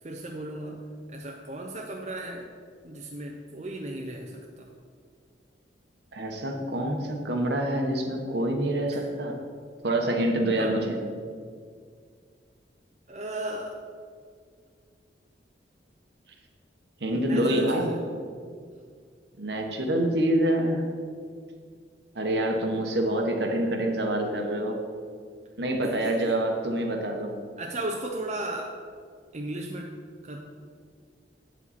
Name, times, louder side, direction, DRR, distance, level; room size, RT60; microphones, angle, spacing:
voice 1, 0.0-2.5 2.8-4.7 8.9-9.1 10.6-10.7 13.1-13.8 17.1-18.0 25.8-26.4 27.6-28.7 29.3-29.9 30.2-30.4, right 1 dB, 40° right, 1 dB, 0.6 m, -35 dB
voice 2, 6.1-9.4 9.8-11.0 17.0-18.0 19.4-20.8 22.1-24.8 25.6-27.3, right 1 dB, 65° right, 3 dB, 1.1 m, -26 dB
8.6 x 7.4 x 4.2 m, 2.1 s
head